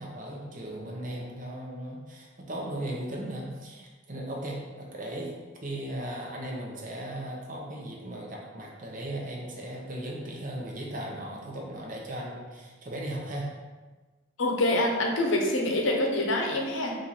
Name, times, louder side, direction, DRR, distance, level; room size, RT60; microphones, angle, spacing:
voice 1, 0.0-5.3 5.6-13.5, right 1 dB, 40° right, -2 dB, 0.7 m, -37 dB
voice 2, 14.4-17.0, left 1 dB, 70° left, 1 dB, 0.7 m, -26 dB
4.5 x 2.5 x 4.1 m, 1.3 s
head